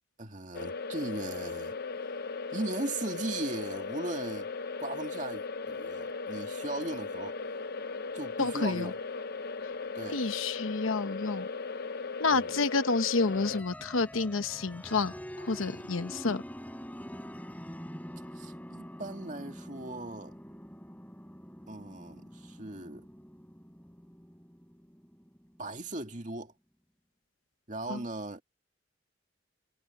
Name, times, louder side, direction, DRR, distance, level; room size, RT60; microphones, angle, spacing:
voice 1, 0.2-1.8 2.5-4.5 4.8-7.4 8.1-9.0 9.9-10.2 12.3-12.6 18.3-20.4 21.7-23.1 25.6-26.5 27.7-28.4, right 2 dB, 40° right, 2.2 m, -38 dB
sound 1, 0.5-13.6, left 4 dB, 50° left, 0.8 m, -37 dB
voice 2, 8.4-8.9 10.1-11.5 12.2-16.4 27.9-28.0, left 3 dB, 85° left, 1.0 m, -29 dB
sound 2, 13.3-25.8, equal, 10° left, 5.0 m, -46 dB
head